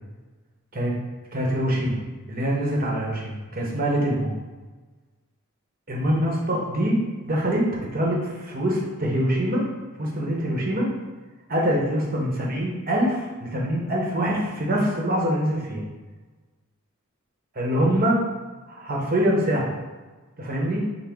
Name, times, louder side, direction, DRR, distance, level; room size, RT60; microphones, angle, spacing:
voice 1, 1.3-2.0 2.3-4.4 5.9-7.0 7.2-7.6 7.9-9.6 10.0-10.9 11.5-15.8 17.5-18.2 18.7-19.7 20.4-20.8, equal, 45° right, -2 dB, 0.9 m, -24 dB
5.9 x 2.0 x 3.5 m, 1.3 s
head